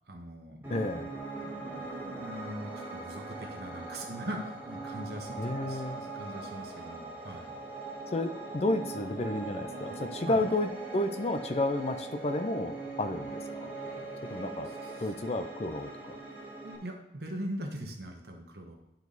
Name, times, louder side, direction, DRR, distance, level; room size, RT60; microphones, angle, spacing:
voice 1, 0.1-0.8 1.4-7.5 10.3-10.4 14.8-15.5 16.6-18.7, equal, 55° right, 2 dB, 1.3 m, -41 dB
Piano, 0.6-16.8, right 3 dB, 10° right, 1.8 m, -41 dB
voice 2, 0.7-1.1 5.4-6.0 8.1-13.7 14.2-14.7 15.0-16.2, left 2 dB, 35° left, 8 dB, 0.5 m, -31 dB
10.0 x 4.6 x 4.0 m, 0.95 s
head